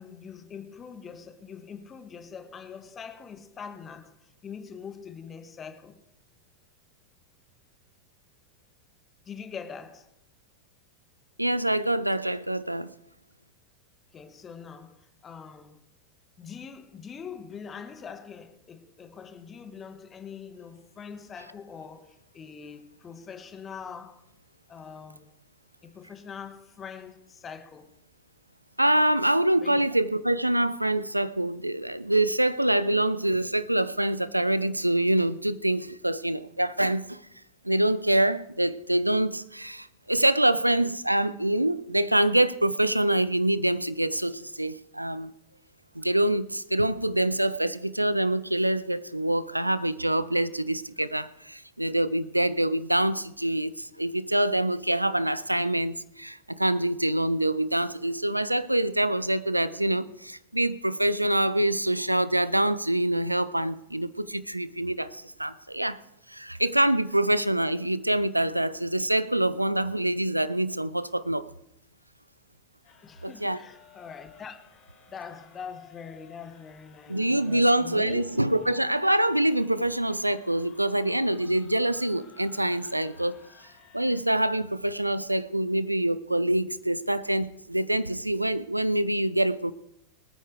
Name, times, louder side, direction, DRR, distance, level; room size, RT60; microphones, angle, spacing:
voice 1, 0.0-6.0 9.3-10.1 14.1-15.8 16.4-24.2 24.7-25.3 25.8-27.9 29.6-29.8 73.0-74.8 75.1-78.2, left 6 dB, 20° left, 1.6 m, -43 dB
voice 2, 11.4-12.9 28.8-37.2 37.6-45.3 46.0-66.0 66.3-71.5 73.2-73.6 77.1-83.4 83.9-89.7, right 1 dB, 85° right, 0.6 m, -25 dB
sound 1, 72.8-84.2, left 6 dB, 40° left, 4.2 m, -56 dB
24.5 x 9.2 x 3.4 m
figure-of-eight pair, 90°, 0 cm